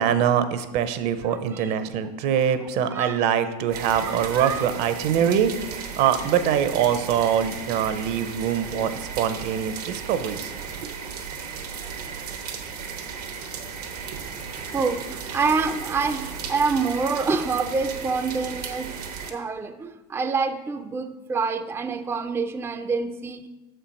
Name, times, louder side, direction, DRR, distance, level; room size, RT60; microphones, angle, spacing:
voice 1, 0.0-10.5 10.8-10.9 14.1-14.2, right 8 dB, 55° right, 11 dB, 0.7 m, -24 dB
voice 2, 1.2-1.8 2.9-3.2 3.9-4.7 5.2-5.3 13.6-13.7 14.7-18.9 19.3-23.5, right 4 dB, 10° right, 8 dB, 0.4 m, -27 dB
sound 1, 3.7-19.3, right 6 dB, 85° right, 1.0 m, -35 dB
6.8 x 4.5 x 5.2 m, 1.1 s
hypercardioid pair, 90°, 20 cm